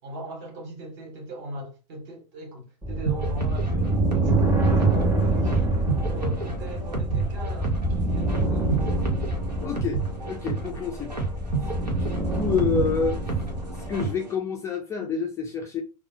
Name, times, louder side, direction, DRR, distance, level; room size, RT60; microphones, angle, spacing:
voice 1, 0.0-5.8 6.0-9.1, right 1 dB, 45° right, 1.6 m, -39 dB
sound 1, 2.8-14.1, right 1 dB, 10° right, 0.9 m, -26 dB
sound 2, 3.1-14.3, right 4 dB, 80° right, 0.9 m, -31 dB
voice 2, 9.6-11.1 11.6-13.2 13.9-15.8, left 5 dB, 15° left, 0.3 m, -28 dB
3.6 x 2.0 x 2.9 m
figure-of-eight pair, 95°, 21 cm